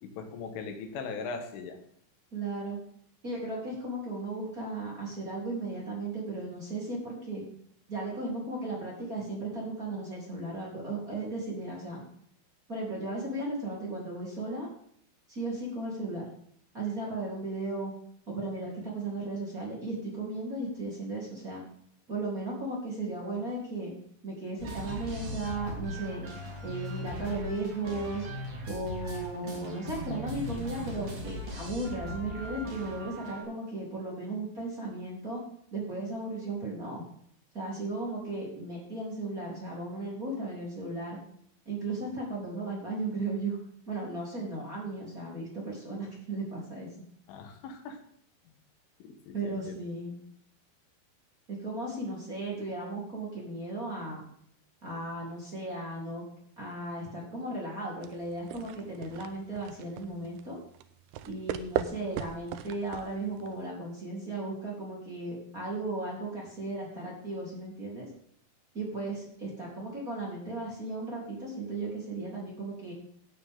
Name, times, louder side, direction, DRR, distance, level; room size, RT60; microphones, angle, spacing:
voice 1, 0.0-1.8 47.3-48.0 48.5-48.6 49.0-49.7, left 4 dB, 90° left, 5 dB, 4.1 m, -40 dB
voice 2, 2.3-2.8 3.2-7.4 7.9-12.0 12.7-14.7 15.3-16.2 16.7-17.9 18.3-21.6 22.1-23.9 24.2-26.2 26.6-28.3 28.7-35.4 35.7-37.0 37.5-41.2 41.6-43.6 43.9-46.9 49.3-50.1 51.5-54.2 54.8-56.2 56.6-60.6 61.2-68.1 68.7-72.9, right 2 dB, 20° right, -4 dB, 3.3 m, -36 dB
sound 1, 24.6-33.4, equal, 45° right, 3.6 m, -39 dB
sound 2, 58.0-63.6, right 10 dB, 85° right, 2.3 m, -38 dB
15.5 x 9.2 x 3.8 m, 0.66 s
omnidirectional pair, 5.5 m